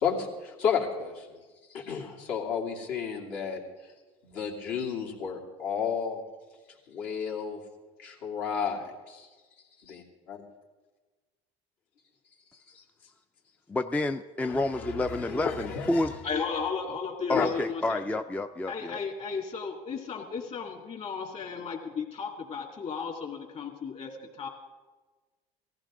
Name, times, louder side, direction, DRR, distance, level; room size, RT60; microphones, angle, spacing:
voice 1, 0.0-1.3 1.7-3.6 4.2-6.2 6.9-7.6 8.0-9.3 9.9-10.0 10.3-10.4 12.7-12.8 14.4-16.1 17.3-17.5, left 6 dB, 70° left, -3 dB, 2.8 m, -32 dB
voice 2, 13.7-16.2 17.3-19.0, left 2 dB, 10° left, 8 dB, 0.4 m, -29 dB
voice 3, 16.2-18.0 18.7-24.1 24.4-24.5, left 5 dB, 40° left, 3 dB, 2.5 m, -34 dB
18.0 x 15.0 x 3.8 m, 1.3 s
supercardioid pair, 95°, 16 cm